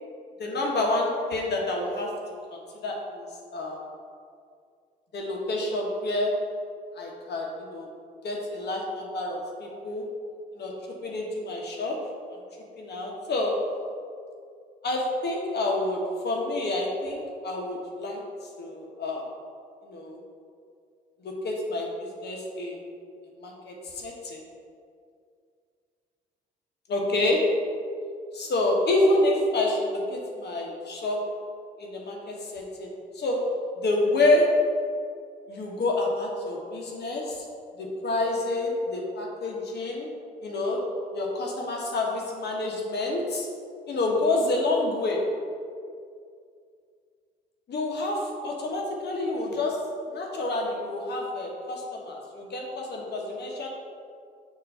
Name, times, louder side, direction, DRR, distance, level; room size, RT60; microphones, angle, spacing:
voice 1, 0.4-2.1 2.5-3.3 3.5-3.8 5.1-6.3 6.9-7.9 8.2-10.1 10.5-10.7 11.0-12.0 12.3-12.4 12.8-13.5 14.8-19.3 19.8-20.2 21.2-22.8 23.4-24.4 26.9-27.4 28.3-31.2 31.8-33.4 33.8-34.5 35.5-37.4 37.8-40.1 40.4-40.8 41.1-43.5 43.9-45.2 47.7-49.8 50.1-53.7, left 2 dB, 55° left, -1 dB, 1.4 m, -28 dB
6.7 x 3.1 x 5.6 m, 2.3 s
hypercardioid pair, 60°, 21 cm